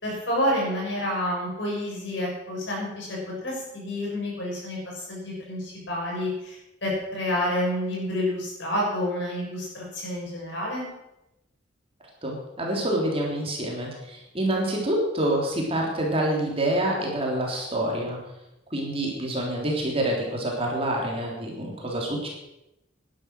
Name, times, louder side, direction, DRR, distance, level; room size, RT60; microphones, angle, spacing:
voice 1, 0.0-10.9, left 1 dB, 65° left, -3 dB, 6.8 m, -29 dB
voice 2, 12.2-18.2 18.7-22.3, right 1 dB, 30° right, -1 dB, 3.3 m, -27 dB
12.0 x 11.0 x 6.4 m, 0.89 s
head